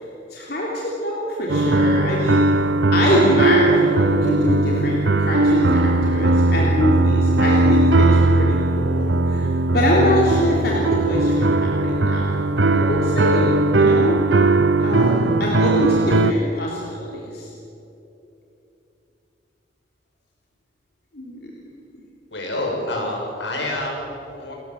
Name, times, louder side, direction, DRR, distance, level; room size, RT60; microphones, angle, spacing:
voice 1, 0.3-2.6 2.9-8.1 8.4-9.5 9.7-12.4 12.7-14.2 14.8-17.5 21.1-21.5, left 1 dB, 60° left, -4 dB, 3.3 m, -24 dB
sound 1, 1.5-16.3, right 2 dB, 85° right, 0.9 m, -18 dB
voice 2, 22.3-24.5, left 1 dB, 85° left, 0 dB, 6.3 m, -27 dB
28.5 x 15.5 x 7.7 m, 2.9 s
head